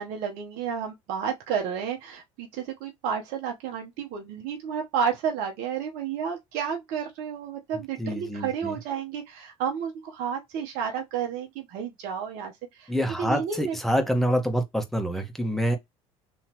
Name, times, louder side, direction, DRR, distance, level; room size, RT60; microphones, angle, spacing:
voice 1, 0.0-12.9 13.2-13.8, right 7 dB, 65° right, 1.1 m, -31 dB
voice 2, 8.0-8.8 12.9-15.8, equal, ahead, 1.5 m, -26 dB
5.5 x 3.1 x 3.0 m
hypercardioid pair, 80°, 16 cm